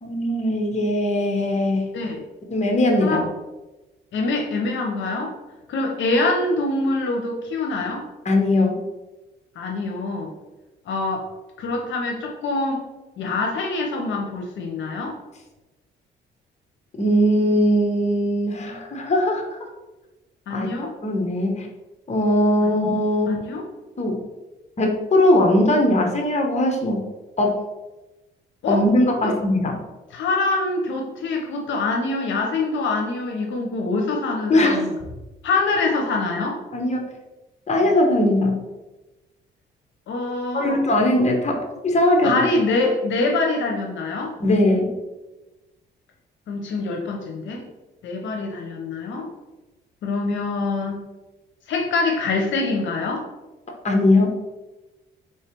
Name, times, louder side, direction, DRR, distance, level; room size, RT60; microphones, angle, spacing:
voice 1, 0.0-1.8 2.5-3.2 8.2-8.8 17.0-19.4 20.5-20.7 21.0-21.7 22.1-23.4 24.0-24.2 24.8-27.0 27.4-27.6 28.7-29.8 34.5-34.8 36.7-37.0 37.7-38.6 40.5-42.4 44.4-44.9 53.8-54.4, left 1 dB, 35° left, 2 dB, 1.0 m, -20 dB
voice 2, 4.1-5.3 5.7-8.0 9.6-10.3 10.9-11.3 11.6-12.8 13.2-15.2 20.5-20.9 22.6-22.7 23.3-23.6 28.6-28.8 29.2-29.3 30.1-34.9 35.4-36.6 40.1-40.8 42.2-44.3 46.5-47.6 48.0-49.3 50.0-51.0 51.7-53.2, left 3 dB, 70° left, 2 dB, 0.7 m, -25 dB
3.5 x 3.2 x 4.4 m, 1.1 s
cardioid pair, 90°, 20 cm